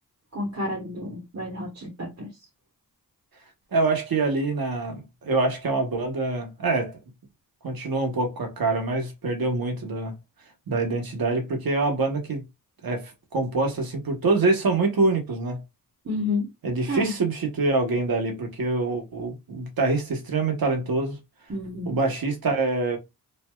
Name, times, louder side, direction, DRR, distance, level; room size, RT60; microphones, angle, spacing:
voice 1, 0.3-2.3 16.0-16.5 16.9-17.1 21.5-22.0, left 2 dB, 45° right, 1.2 m, -30 dB
voice 2, 3.7-7.0 7.6-10.1 10.7-12.4 12.8-15.6 16.6-21.2 21.9-23.0, right 3 dB, 70° right, 1.1 m, -25 dB
3.1 x 2.6 x 2.2 m
wide cardioid pair, 125°, 37 cm